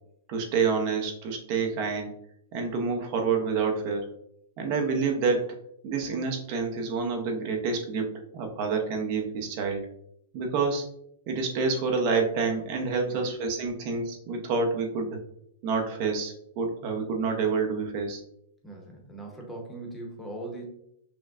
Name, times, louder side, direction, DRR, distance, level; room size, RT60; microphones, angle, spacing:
voice 1, 0.3-2.1 2.5-4.1 4.6-5.6 5.8-9.9 10.3-10.9 11.3-15.2 15.6-18.2, right 4 dB, 45° right, 3 dB, 0.7 m, -28 dB
voice 2, 18.6-20.6, right 2 dB, 5° left, 0 dB, 0.8 m, -40 dB
5.9 x 2.1 x 2.4 m, 0.74 s
hypercardioid pair, 140°, 0 cm